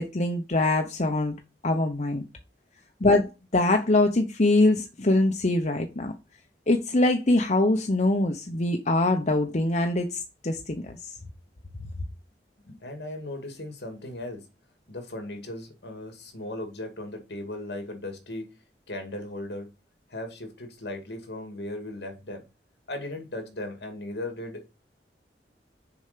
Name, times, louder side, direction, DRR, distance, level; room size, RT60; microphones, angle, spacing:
voice 1, 0.0-1.4 1.6-2.2 3.0-6.1 6.7-11.0, left 2 dB, 40° left, 0.9 m, -23 dB
voice 2, 12.6-14.5 14.9-18.6 18.9-19.7 20.1-22.5 22.9-24.7, left 1 dB, 70° left, 2.4 m, -37 dB
6.9 x 4.4 x 6.7 m
head